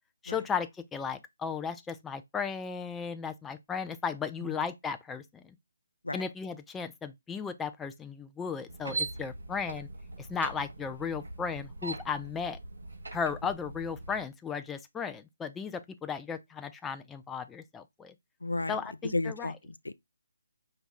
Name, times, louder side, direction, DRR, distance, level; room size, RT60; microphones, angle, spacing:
voice 1, 0.2-5.5 6.1-9.9 10.2-12.6 13.1-18.1 18.7-19.5, left 6 dB, 10° left, 0.4 m, -35 dB
sound 1, 8.7-14.2, right 3 dB, 75° right, 1.3 m, -41 dB
voice 2, 18.4-18.8 19.0-19.9, left 2 dB, 85° left, 0.4 m, -33 dB
5.2 x 2.3 x 4.0 m
figure-of-eight pair, 145°, 0 cm